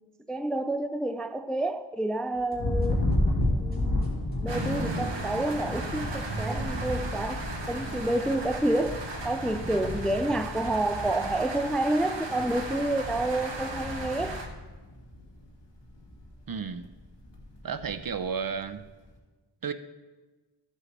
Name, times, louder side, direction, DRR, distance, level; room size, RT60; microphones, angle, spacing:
voice 1, 0.3-3.0 3.5-14.4, right 1 dB, ahead, 0.4 m, -29 dB
sound 1, 2.3-11.7, left 2 dB, 20° left, 2.8 m, -48 dB
Thunder, 2.6-15.5 15.8-16.4 16.7-18.2, left 1 dB, 80° left, 1.9 m, -33 dB
sound 2, 4.5-14.5, right 2 dB, 80° right, 1.4 m, -36 dB
voice 2, 16.5-16.9 17.6-18.8 19.6-19.7, right 6 dB, 50° right, 0.6 m, -32 dB
15.0 x 7.6 x 3.3 m
wide cardioid pair, 65°, 43 cm